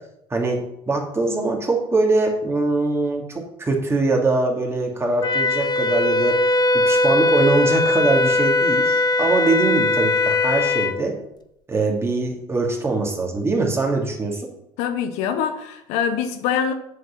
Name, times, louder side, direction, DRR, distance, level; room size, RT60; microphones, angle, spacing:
voice 1, 0.3-0.6 0.9-11.1 11.7-14.5, right 3 dB, 20° right, 2.4 m, -22 dB
Wind instrument woodwind instrument, 5.2-10.9, left 2 dB, 35° left, 0.8 m, -19 dB
voice 2, 14.8-16.7, left 7 dB, 75° left, 1.0 m, -24 dB
7.7 x 4.9 x 7.2 m
supercardioid pair, 85°, 12 cm